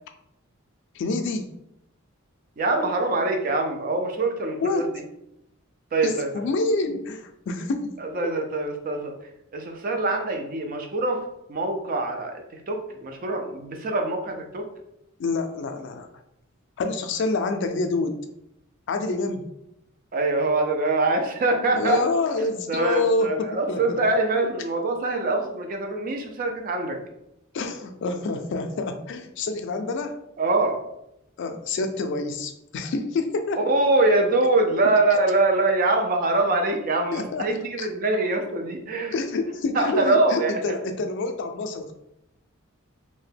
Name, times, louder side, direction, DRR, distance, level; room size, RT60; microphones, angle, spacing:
voice 1, 0.9-1.5 4.6-4.9 6.0-7.9 15.2-16.1 16.8-18.2 18.9-19.5 21.7-24.0 27.5-30.2 31.4-33.6 34.8-34.9 37.1-37.5 37.8-37.9 39.1-41.9, left 3 dB, 60° left, 7 dB, 0.3 m, -27 dB
voice 2, 2.6-4.9 5.9-6.3 8.0-9.1 9.5-11.2 11.5-14.6 20.1-22.0 22.4-27.0 30.4-30.8 33.7-39.1 39.7-40.6, right 2 dB, 45° right, 4 dB, 0.4 m, -24 dB
2.7 x 2.1 x 3.3 m, 0.82 s
head